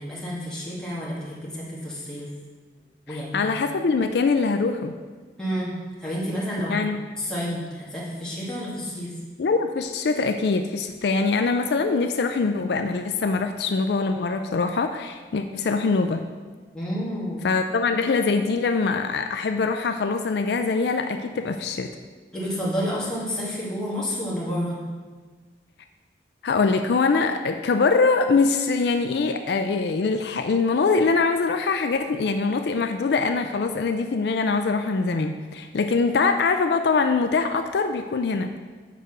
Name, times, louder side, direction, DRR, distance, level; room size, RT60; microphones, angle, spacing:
voice 1, 0.0-2.3 3.1-3.4 5.4-6.8 7.2-9.1 16.7-17.4 22.3-24.8, equal, 5° left, -7 dB, 2.0 m, -30 dB
voice 2, 3.1-4.9 6.7-7.0 9.4-16.2 17.4-21.9 26.4-38.5, left 4 dB, 65° left, 7 dB, 0.4 m, -23 dB
6.7 x 4.9 x 6.6 m, 1.4 s
head